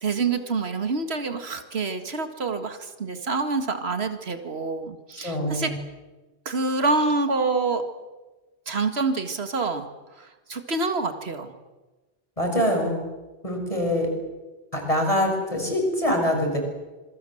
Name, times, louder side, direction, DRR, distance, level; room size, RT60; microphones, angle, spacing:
voice 1, 0.0-5.7 6.5-7.8 8.7-9.9 10.1-11.5, right 3 dB, 75° right, 7 dB, 2.2 m, -27 dB
voice 2, 5.2-5.8 12.4-13.0 13.4-14.1 14.7-16.6, equal, 35° left, 2 dB, 6.5 m, -24 dB
26.5 x 22.5 x 7.8 m, 1.2 s
omnidirectional pair, 1.1 m